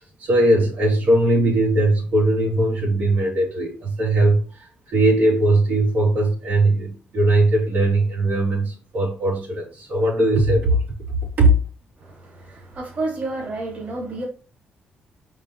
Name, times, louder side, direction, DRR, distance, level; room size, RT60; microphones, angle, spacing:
voice 1, 0.2-10.8 11.4-11.5, right 1 dB, 75° right, 3.7 m, -19 dB
voice 2, 12.0-14.2, right 2 dB, 45° right, 2.7 m, -30 dB
5.6 x 5.4 x 3.3 m
cardioid pair, 115°, 3 cm